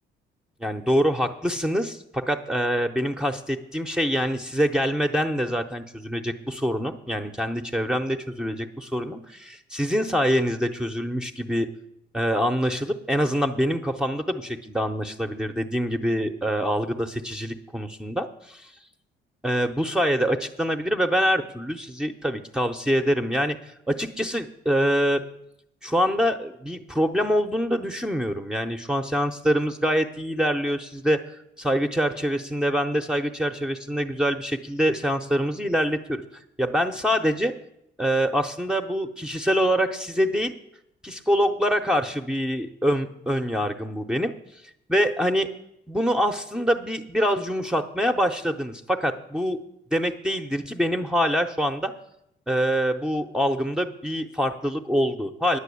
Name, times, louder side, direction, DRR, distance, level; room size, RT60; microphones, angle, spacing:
voice 1, 0.6-11.7 12.1-18.7 19.4-25.2 25.8-37.5 38.0-40.5 41.0-44.6 44.9-45.5 45.9-49.6 49.9-51.9 52.5-55.6, equal, 5° right, 5 dB, 0.6 m, -25 dB
10.0 x 5.9 x 8.4 m, 0.80 s
cardioid pair, 90°, 20 cm